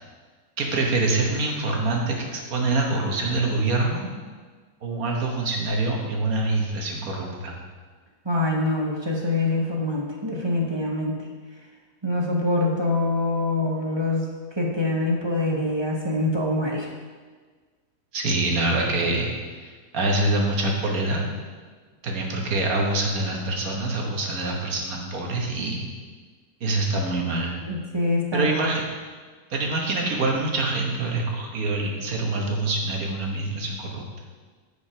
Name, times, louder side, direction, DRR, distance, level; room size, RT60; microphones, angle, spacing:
voice 1, 0.6-4.2 4.8-7.5 18.1-19.3 19.6-21.2 22.0-25.9 26.6-27.5 28.3-28.8 29.5-34.0, right 2 dB, 65° right, 0 dB, 1.6 m, -25 dB
voice 2, 8.2-11.1 12.0-14.3 14.6-16.9 27.6-28.5, left 2 dB, 20° right, -1 dB, 0.9 m, -24 dB
8.2 x 5.1 x 5.0 m, 1.5 s
omnidirectional pair, 1.7 m